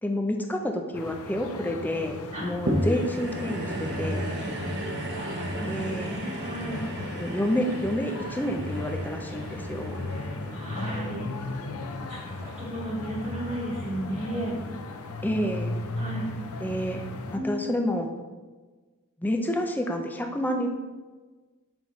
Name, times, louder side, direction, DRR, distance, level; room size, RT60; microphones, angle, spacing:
voice 1, 0.0-4.3 5.7-6.1 7.2-9.9 15.2-15.7 16.6-17.0 17.3-18.1 19.2-20.7, left 1 dB, 10° left, 4 dB, 0.5 m, -29 dB
sound 1, 0.9-17.4, left 2 dB, 80° left, 0.6 m, -37 dB
sound 2, 2.7-13.2 13.8-13.9, right 1 dB, 50° right, 0.9 m, -34 dB
voice 2, 5.0-6.8 10.5-11.2 12.1-14.6 16.0-16.3 17.3-17.7, right 1 dB, 30° right, -8 dB, 1.3 m, -34 dB
7.0 x 5.3 x 3.1 m, 1.3 s
head